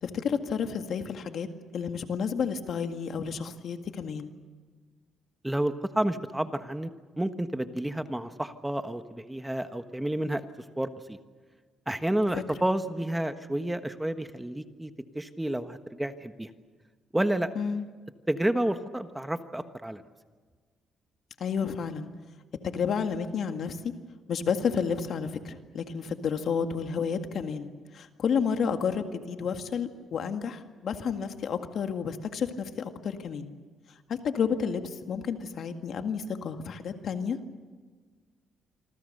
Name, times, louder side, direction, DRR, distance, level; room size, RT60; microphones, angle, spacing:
voice 1, 0.0-4.3 12.3-12.4 17.6-17.8 21.4-22.1 22.6-23.9 24.3-33.5 34.1-37.4, left 6 dB, 60° left, 7 dB, 2.0 m, -31 dB
voice 2, 5.4-6.9 7.2-10.4 10.8-11.2 11.9-14.9 15.1-16.5 17.1-17.5 18.3-20.0, right 1 dB, 10° right, 9 dB, 1.3 m, -30 dB
26.5 x 25.5 x 6.7 m, 1.5 s
cardioid pair, 90°, 0 cm